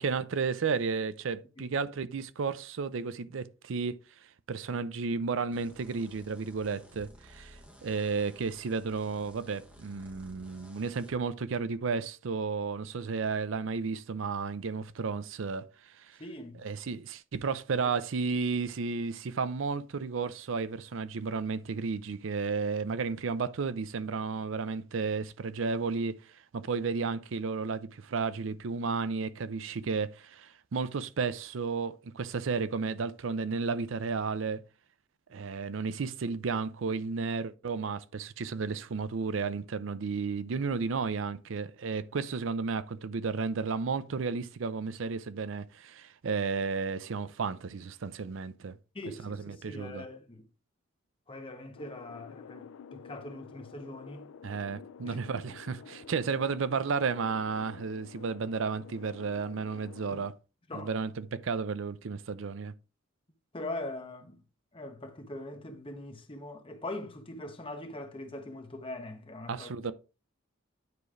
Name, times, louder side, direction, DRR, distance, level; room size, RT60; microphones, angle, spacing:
voice 1, 0.0-4.0 4.5-16.2 16.6-26.2 26.5-34.6 35.3-48.8 49.2-50.0 54.4-60.3 60.7-62.7 69.5-69.9, right 5 dB, 70° right, 0.5 m, -33 dB
sound 1, 5.5-11.2, equal, 5° right, 1.1 m, -55 dB
voice 2, 16.2-16.6 48.9-50.5 51.3-54.3 55.0-55.2 60.1-60.2 60.7-60.9 63.5-64.4 64.7-69.7, left 2 dB, 25° left, 1.1 m, -42 dB
sound 2, 51.8-60.3, left 6 dB, 85° left, 0.4 m, -50 dB
9.4 x 3.2 x 4.9 m
head